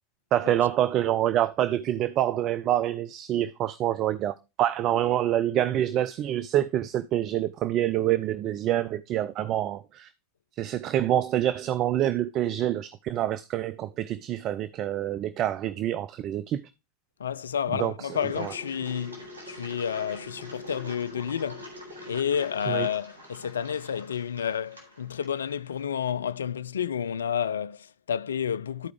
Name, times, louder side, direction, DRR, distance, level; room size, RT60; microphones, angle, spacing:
voice 1, 0.3-10.1 10.6-16.7 17.7-18.5 22.7-22.9, right 12 dB, 40° right, 0.4 m, -26 dB
voice 2, 17.2-21.7 22.0-28.9, left 8 dB, 80° left, 0.3 m, -30 dB
Engine, 18.1-25.8, left 1 dB, 80° right, 3.3 m, -45 dB
13.0 x 4.7 x 3.2 m
figure-of-eight pair, 85°, 0 cm